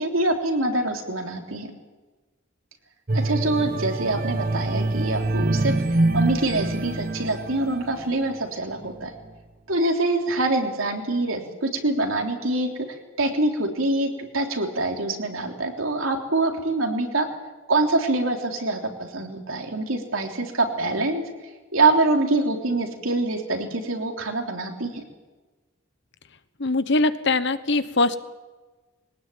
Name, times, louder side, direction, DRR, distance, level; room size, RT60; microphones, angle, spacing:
voice 1, 0.0-1.7 3.1-5.7 6.1-9.1 9.7-12.7 13.2-17.3 17.7-21.2 21.7-25.0, right 2 dB, 80° right, 3 dB, 3.5 m, -25 dB
sound 1, 3.1-8.3 8.8-9.0, right 2 dB, 45° right, 1.1 m, -25 dB
voice 2, 26.6-28.2, left 3 dB, 60° left, 12 dB, 1.2 m, -22 dB
22.5 x 19.0 x 9.2 m, 1.3 s
head